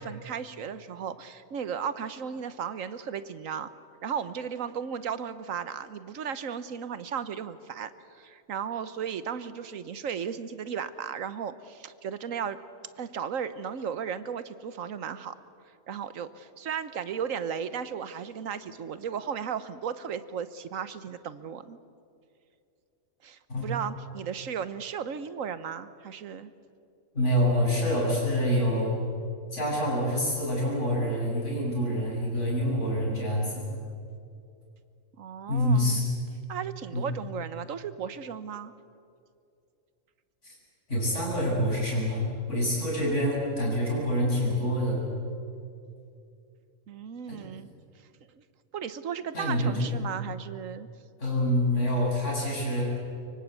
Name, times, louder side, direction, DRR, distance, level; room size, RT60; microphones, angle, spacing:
voice 1, 0.0-3.7 4.0-12.6 13.0-15.3 15.9-21.8 23.2-26.5 35.2-36.1 36.5-38.7 46.9-47.7 48.3-48.4 48.7-50.9, right 7 dB, 85° right, 13 dB, 1.4 m, -35 dB
voice 2, 27.1-29.0 29.5-33.7 35.5-36.0 36.9-37.0 40.4-40.5 40.9-45.0 47.3-47.4 49.3-49.9 51.2-52.9, equal, 65° left, -4 dB, 8.6 m, -26 dB
24.0 x 24.0 x 8.2 m, 2.5 s
omnidirectional pair, 1.3 m